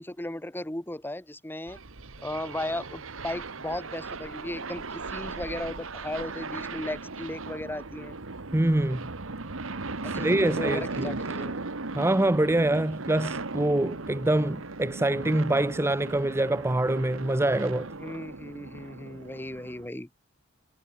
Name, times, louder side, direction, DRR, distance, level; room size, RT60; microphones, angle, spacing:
voice 1, 0.0-1.8 2.2-8.1 10.0-11.6 18.0-20.1, left 1 dB, 10° left, 1.4 m, -36 dB
sound 1, 1.7-19.9, right 3 dB, 75° right, 1.5 m, -37 dB
voice 2, 8.5-9.0 10.0-11.1 11.9-17.9, right 1 dB, 15° right, 0.6 m, -25 dB
head